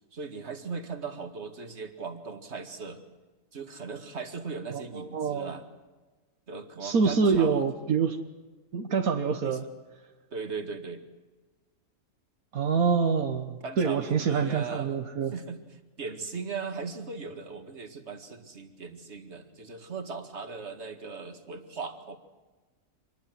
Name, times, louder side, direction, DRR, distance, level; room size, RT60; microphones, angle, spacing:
voice 1, 0.1-3.0 3.5-5.6 6.5-7.6 9.4-9.6 10.3-11.0 13.6-15.1 15.3-22.2, right 5 dB, 50° right, 7 dB, 2.3 m, -38 dB
voice 2, 4.7-5.5 6.8-8.2 8.7-9.6 12.5-15.4, right 5 dB, 80° right, 6 dB, 1.7 m, -26 dB
26.5 x 21.0 x 7.8 m, 1.3 s
omnidirectional pair, 1.5 m